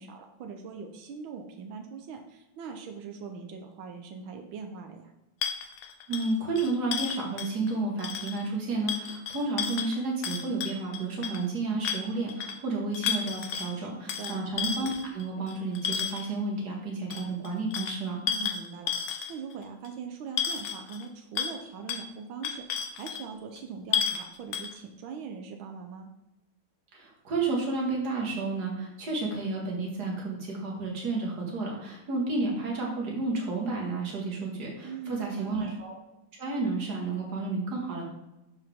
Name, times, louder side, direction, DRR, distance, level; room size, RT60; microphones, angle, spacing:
voice 1, 0.0-5.1 13.7-14.4 18.3-26.1 34.8-35.8, right 5 dB, 85° right, 4 dB, 1.7 m, -41 dB
sound 1, 5.4-7.7 8.0-8.4 8.9-11.4 11.8-12.6 12.9-13.7 14.1-16.3 17.1-19.5 19.8-19.9 20.4-21.0 21.4-21.6 21.9-22.0 22.4-23.2 23.6-23.7 23.9-24.3 24.5-24.8, left 7 dB, 70° left, 1.4 m, -32 dB
voice 2, 6.1-18.2 26.9-36.0 36.4-38.1, right 3 dB, 55° right, -2 dB, 2.5 m, -31 dB
11.5 x 4.8 x 3.6 m, 0.98 s
omnidirectional pair, 2.1 m